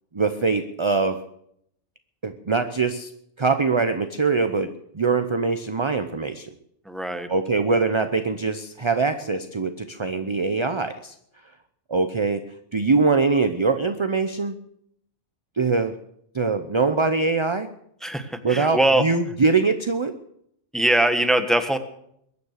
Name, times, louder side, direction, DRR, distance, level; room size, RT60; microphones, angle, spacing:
voice 1, 0.1-1.2 2.2-3.1 3.4-6.5 7.3-11.1 11.9-12.4 12.7-14.5 15.6-15.9 16.3-17.7 18.4-20.1, right 4 dB, 30° right, 9 dB, 0.7 m, -23 dB
voice 2, 6.8-7.3 18.0-19.0 20.7-21.8, right 1 dB, ahead, 8 dB, 1.2 m, -21 dB
22.0 x 9.6 x 6.6 m, 0.72 s
omnidirectional pair, 1.3 m